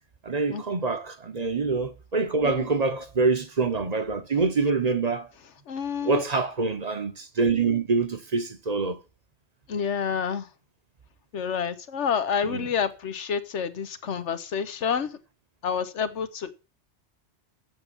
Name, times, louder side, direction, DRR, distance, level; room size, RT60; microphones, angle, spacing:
voice 1, 0.2-5.3 6.0-9.0 12.4-12.7, right 4 dB, 40° right, 1.0 m, -25 dB
voice 2, 5.7-6.2 9.7-10.5 11.3-15.2 15.6-16.5, left 7 dB, 85° left, 1.3 m, -28 dB
7.7 x 7.0 x 7.0 m
omnidirectional pair, 1.2 m